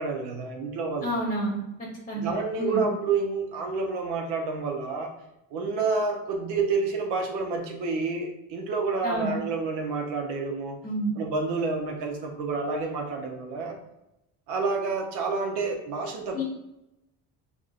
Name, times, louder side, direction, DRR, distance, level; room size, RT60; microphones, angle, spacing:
voice 1, 0.0-1.1 2.2-5.1 5.5-10.7 11.2-13.7 14.5-16.4, right 4 dB, 85° right, 2 dB, 0.6 m, -29 dB
voice 2, 1.0-1.6 2.1-2.9 9.0-9.4 10.8-11.1 16.3-16.4, right 1 dB, 20° left, -3 dB, 0.9 m, -29 dB
3.6 x 2.2 x 2.4 m, 0.89 s
supercardioid pair, 70°, 40 cm